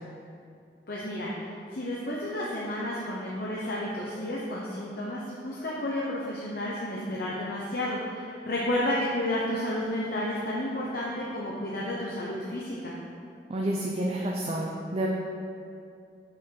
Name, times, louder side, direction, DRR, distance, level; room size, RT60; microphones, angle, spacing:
voice 1, 0.9-13.0, left 1 dB, 60° left, -5 dB, 0.9 m, -31 dB
voice 2, 13.5-15.1, right 1 dB, 35° right, -2 dB, 0.6 m, -29 dB
6.2 x 5.6 x 5.8 m, 2.5 s
head